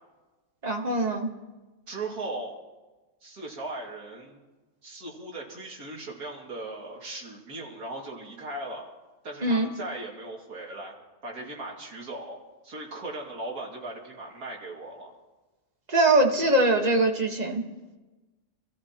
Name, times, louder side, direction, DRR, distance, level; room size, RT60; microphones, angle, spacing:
voice 1, 0.6-1.3 9.4-9.7 15.9-17.6, right 2 dB, 30° right, 3 dB, 1.4 m, -22 dB
voice 2, 1.9-2.6 3.2-4.4 4.8-8.8 9.2-10.9 11.2-12.4 12.6-15.1 16.4-16.5, right 2 dB, 70° right, -1 dB, 2.8 m, -38 dB
25.5 x 14.0 x 3.0 m, 1.2 s
omnidirectional pair, 1.6 m